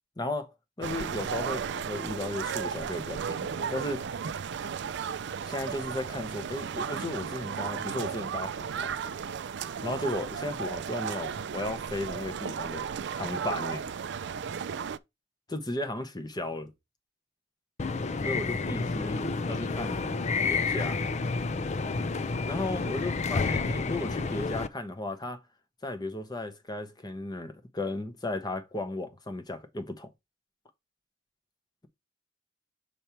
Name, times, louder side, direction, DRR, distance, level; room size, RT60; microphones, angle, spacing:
voice 1, 0.2-0.5 0.8-4.0 5.4-8.9 9.8-13.8 15.5-16.7 18.2-20.1 20.4-21.0 22.4-25.4 25.8-30.1, left 2 dB, 20° left, 1.0 m, -35 dB
sound 1, 0.8-15.0, right 7 dB, 65° right, 0.4 m, -34 dB
sound 2, 17.8-24.7, left 4 dB, 35° left, 0.5 m, -30 dB
6.9 x 3.3 x 4.4 m
head